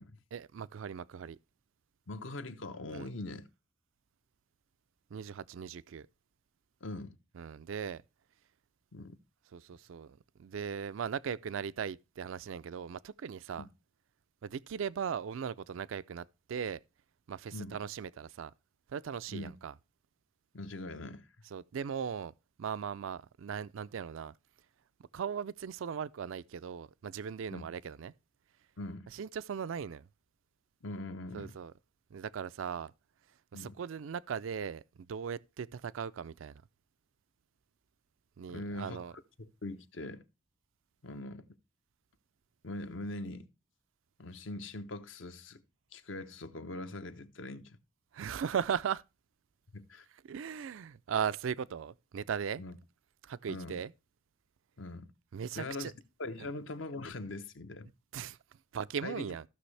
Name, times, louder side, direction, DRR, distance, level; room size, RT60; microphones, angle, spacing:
voice 1, 0.3-1.4 2.9-3.1 5.1-6.1 7.4-8.0 9.5-13.7 14.4-16.8 17.3-18.5 18.9-19.7 21.5-22.3 22.6-24.3 25.1-28.1 29.1-30.1 31.3-31.7 32.1-32.9 33.5-36.6 38.4-39.1 48.1-49.0 50.3-52.6 53.2-53.9 55.3-55.9 58.1-58.4 58.7-59.4, right 7 dB, 75° right, 0.4 m, -38 dB
voice 2, 2.1-3.5 6.8-7.2 8.9-9.2 13.6-13.7 17.5-17.8 19.3-19.5 20.5-21.3 27.5-27.6 28.8-29.1 30.8-31.6 33.5-33.7 38.5-39.0 39.4-40.2 41.0-41.5 42.6-43.5 44.2-45.6 45.9-47.8 49.7-50.0 52.6-52.8 53.5-53.8 54.8-55.1 55.5-55.9 56.2-57.9 59.0-59.3, left 2 dB, 70° left, 0.9 m, -42 dB
14.5 x 6.2 x 3.2 m
head